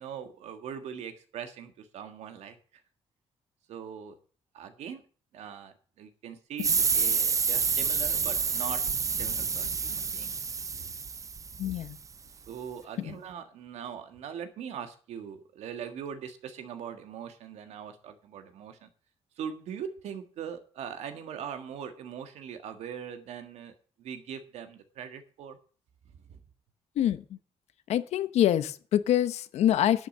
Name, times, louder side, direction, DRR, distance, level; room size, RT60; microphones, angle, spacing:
voice 1, 0.0-2.6 3.7-4.1 4.5-5.0 5.3-8.8 9.2-10.3 10.7-10.9 12.5-18.9 19.4-25.6 26.3-26.4, right 8 dB, 85° right, 8 dB, 1.6 m, -41 dB
sound 1, 6.6-11.9, right 5 dB, 30° right, 0.6 m, -28 dB
voice 2, 11.6-12.0 13.0-13.2 27.0-27.4 27.9-30.1, left 11 dB, 80° left, 13 dB, 0.9 m, -26 dB
11.0 x 6.4 x 8.3 m, 0.42 s
cardioid pair, 105°, 11 cm